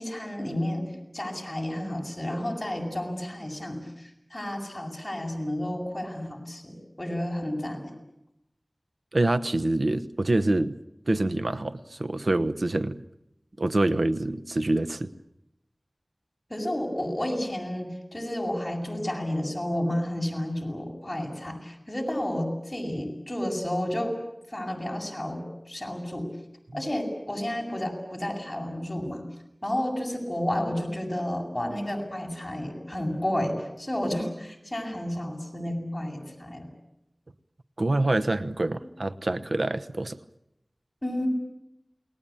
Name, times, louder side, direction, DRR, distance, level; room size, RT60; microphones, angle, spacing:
voice 1, 0.0-7.9 16.5-24.1 24.5-26.3 26.7-29.2 29.6-36.7 41.0-41.3, left 1 dB, 20° left, 1 dB, 7.9 m, -31 dB
voice 2, 9.1-10.8 11.1-13.0 13.6-15.1 26.7-26.8 37.8-40.2, right 2 dB, 75° right, 13 dB, 1.1 m, -26 dB
29.0 x 20.0 x 8.7 m, 0.85 s
wide cardioid pair, 50°, 0 cm